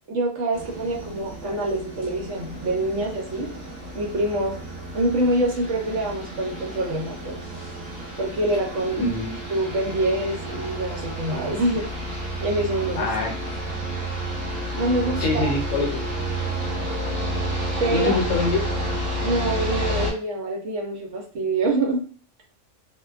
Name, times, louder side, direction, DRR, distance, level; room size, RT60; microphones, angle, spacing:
voice 1, 0.1-3.5 3.9-4.6 4.9-7.4 8.2-9.0 9.5-11.9 12.4-13.1 14.7-15.5 17.8-18.2 19.2-22.0, right 1 dB, 65° right, -1 dB, 0.9 m, -25 dB
sound 1, 0.5-20.1, right 1 dB, 35° right, 1.1 m, -31 dB
voice 2, 9.0-9.4 13.0-13.7 15.2-16.0 17.9-18.7, left 3 dB, 70° left, 0 dB, 1.0 m, -25 dB
2.4 x 2.2 x 2.3 m, 0.41 s
omnidirectional pair, 1.4 m